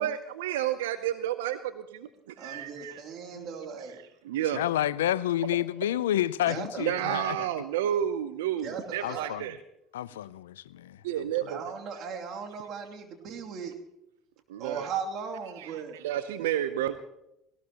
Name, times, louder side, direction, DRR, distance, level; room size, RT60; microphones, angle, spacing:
voice 1, 0.0-2.9 4.3-4.6 6.8-9.6 11.0-11.6 14.5-14.9 15.6-15.7 16.0-16.9, right 11 dB, 80° right, 12 dB, 0.6 m, -30 dB
voice 2, 2.4-4.0 6.5-7.3 8.5-9.4 11.5-13.8 14.6-16.0, right 6 dB, 55° right, 2 dB, 2.7 m, -37 dB
voice 3, 4.5-7.4 9.0-9.4 9.9-11.0, left 12 dB, 85° left, 20 dB, 0.4 m, -29 dB
18.5 x 18.5 x 3.0 m, 0.83 s
hypercardioid pair, 65°, 0 cm